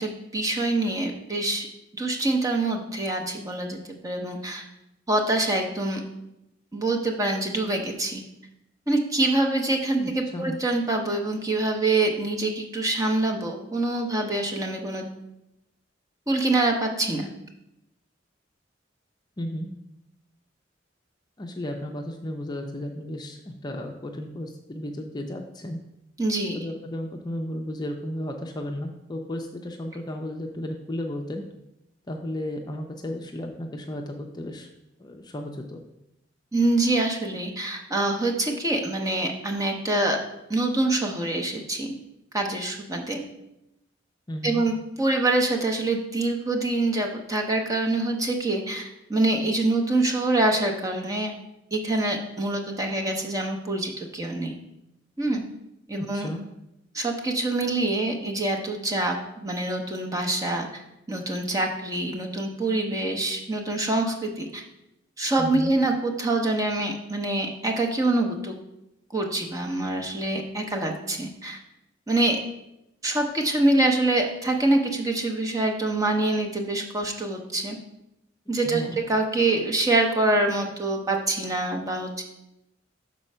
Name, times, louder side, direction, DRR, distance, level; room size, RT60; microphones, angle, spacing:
voice 1, 0.0-1.7 1.9-3.8 4.0-4.6 5.1-6.0 6.7-8.2 8.9-15.1 16.3-17.3 26.2-26.6 36.5-40.2 40.5-41.9 42.3-43.2 44.4-51.3 51.7-54.5 55.2-55.4 55.9-56.3 56.9-60.8 61.1-64.6 65.2-68.5 69.1-71.6 72.1-72.4 73.0-77.8 78.5-82.2, right 2 dB, 20° right, 2 dB, 0.9 m, -25 dB
voice 2, 10.0-10.6 19.4-19.7 21.4-25.8 26.5-31.4 32.1-34.7 35.0-35.8 44.3-44.6 56.0-56.4 65.4-65.7 78.7-79.0, left 1 dB, 20° left, 2 dB, 0.5 m, -34 dB
6.1 x 4.4 x 5.5 m, 0.87 s
head